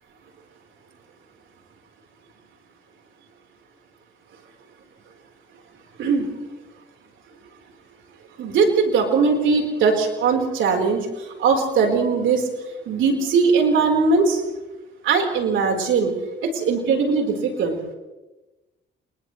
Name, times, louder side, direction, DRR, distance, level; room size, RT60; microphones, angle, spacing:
voice 1, 6.0-6.3 8.4-12.5 12.9-14.4 15.0-16.1 16.4-17.8, right 5 dB, 75° right, 2 dB, 4.4 m, -20 dB
29.0 x 29.0 x 3.3 m, 1.1 s
cardioid pair, 90°, 20 cm